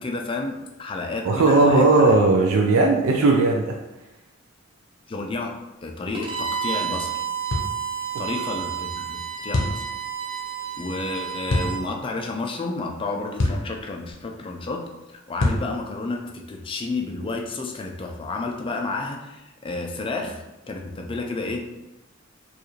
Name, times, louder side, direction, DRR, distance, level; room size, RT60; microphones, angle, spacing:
voice 1, 0.0-2.1 5.1-7.1 8.2-9.8 10.8-21.8, left 3 dB, 25° left, 2 dB, 0.4 m, -31 dB
voice 2, 1.2-3.8, right 3 dB, 85° right, 1 dB, 0.4 m, -17 dB
Bowed string instrument, 6.1-11.8, right 8 dB, 25° right, 0.6 m, -30 dB
sound 1, 7.5-7.7 9.5-9.8 11.5-11.7 13.4-13.7 15.4-15.7, left 2 dB, 70° left, 0.7 m, -23 dB
4.7 x 2.5 x 3.1 m, 0.98 s
head